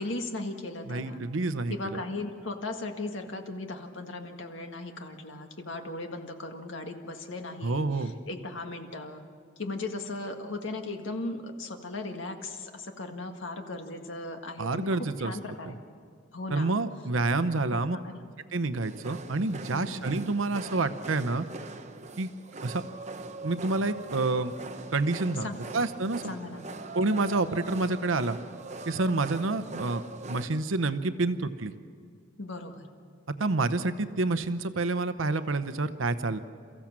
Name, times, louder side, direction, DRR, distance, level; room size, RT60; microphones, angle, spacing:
voice 1, 0.0-1.2 1.7-9.2 9.6-15.8 16.3-16.7 17.7-18.3 19.7-20.1 25.4-25.7 26.3-26.8 32.4-32.9, left 2 dB, 75° left, 4 dB, 1.8 m, -37 dB
voice 2, 0.9-2.0 7.6-8.1 14.6-15.4 16.5-18.0 18.5-21.5 22.2-22.3 22.6-22.8 23.4-24.5 24.9-26.3 26.9-28.4 28.9-31.7 33.4-36.4, right 3 dB, 85° right, 11 dB, 0.8 m, -28 dB
sound 1, 18.8-30.5, right 3 dB, 35° right, 0.9 m, -42 dB
29.0 x 15.0 x 7.5 m, 2.1 s
head